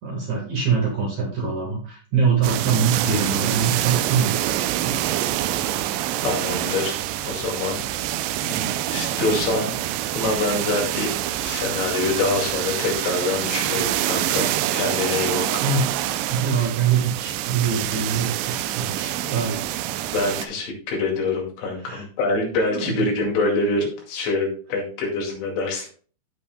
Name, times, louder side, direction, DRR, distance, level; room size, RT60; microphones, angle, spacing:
voice 1, 0.0-4.9 15.6-15.9 16.3-19.7 21.8-22.0 22.7-23.1, right 5 dB, 55° right, -1 dB, 2.4 m, -24 dB
sound 1, 2.4-20.5, right 13 dB, 85° right, 2.8 m, -26 dB
voice 2, 6.2-7.0 7.2-7.8 8.5-9.7 10.1-11.1 11.4-15.5 19.2-19.4 20.1-25.9, left 3 dB, 80° left, 0 dB, 4.5 m, -25 dB
15.0 x 5.5 x 2.2 m, 0.41 s
omnidirectional pair, 5.0 m